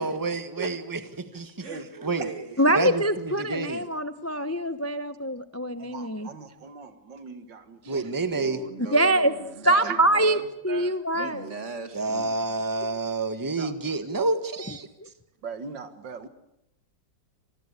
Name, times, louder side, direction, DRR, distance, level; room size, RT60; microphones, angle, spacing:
voice 1, 0.0-1.0 1.3-1.5 2.0-2.3 2.7-3.8 7.9-8.6 11.9-14.9, right 3 dB, 10° right, 9 dB, 1.4 m, -28 dB
voice 2, 1.6-2.6 8.3-10.4 11.1-12.4, right 4 dB, 40° right, 8 dB, 2.4 m, -39 dB
voice 3, 2.6-6.3 7.8-8.0 8.9-9.3 9.6-10.4 10.6-11.5 15.0-15.1, right 1 dB, 15° left, 11 dB, 0.5 m, -24 dB
voice 4, 5.8-8.0 9.7-10.0 10.7-11.5 12.8-12.9 13.6-13.7 15.4-16.3, right 5 dB, 90° right, 9 dB, 2.5 m, -38 dB
26.5 x 20.0 x 8.2 m, 0.82 s
omnidirectional pair, 1.9 m